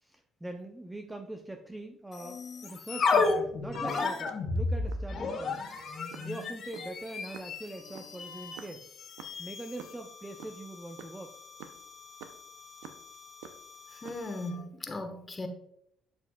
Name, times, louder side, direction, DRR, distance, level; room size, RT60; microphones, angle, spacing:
voice 1, 0.0-8.9 9.4-11.3, right 1 dB, 15° right, 0.6 m, -43 dB
sound 1, 2.1-14.6, left 3 dB, 60° left, 1.4 m, -34 dB
sound 2, 3.5-5.1 5.5-5.7 6.1-9.9 10.2-13.2 13.4-14.4, right 8 dB, 90° right, 0.5 m, -49 dB
voice 2, 13.9-15.5, left 2 dB, 30° left, 1.2 m, -38 dB
6.9 x 6.9 x 2.3 m
supercardioid pair, 70°, 0 cm